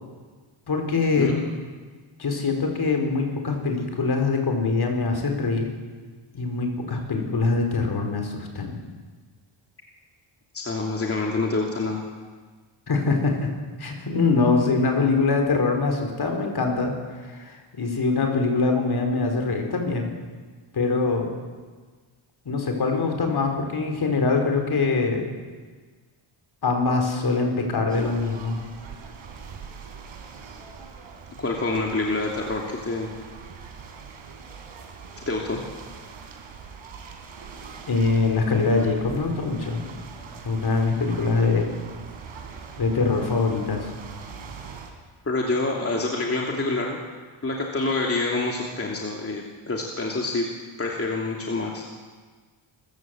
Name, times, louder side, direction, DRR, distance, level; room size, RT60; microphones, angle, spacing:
voice 1, 0.7-1.3 2.2-5.7 6.3-8.8 12.9-13.5 13.8-16.9 17.2-20.1 20.7-21.3 22.4-25.3 26.6-28.6 37.9-39.8 40.4-41.7 42.8-43.9, left 3 dB, 50° left, 3 dB, 4.7 m, -23 dB
voice 2, 10.5-12.0 31.4-33.1 35.2-35.6 45.2-47.0 47.4-50.5 50.8-51.8, left 3 dB, 30° left, -1 dB, 2.9 m, -27 dB
sound 1, 27.9-44.9, right 5 dB, 70° right, 3.8 m, -42 dB
26.5 x 15.0 x 7.9 m, 1.5 s
cardioid pair, 110°, 49 cm